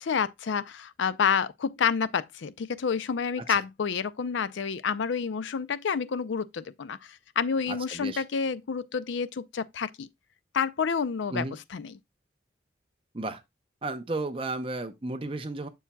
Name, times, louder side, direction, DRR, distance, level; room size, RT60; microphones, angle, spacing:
voice 1, 0.0-10.1 10.5-12.0, left 6 dB, 85° left, 0.4 m, -29 dB
voice 2, 7.7-8.2 11.3-11.6 13.1-13.4 13.8-15.7, right 2 dB, 30° right, 0.7 m, -33 dB
7.1 x 7.1 x 2.3 m
head